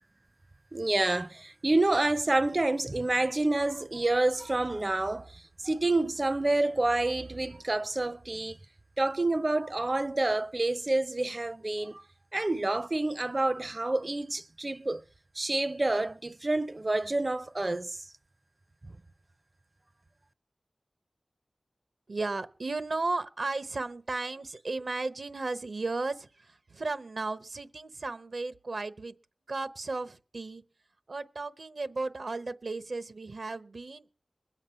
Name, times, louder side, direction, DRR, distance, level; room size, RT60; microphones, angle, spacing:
voice 1, 0.7-8.6 9.0-12.0 12.3-15.0 15.3-18.0, right 2 dB, 40° right, 0.6 m, -28 dB
voice 2, 22.1-29.1 29.5-30.6 31.1-34.0, right 3 dB, 75° right, 0.9 m, -35 dB
21.0 x 8.0 x 5.6 m
wide cardioid pair, 45°, 0 cm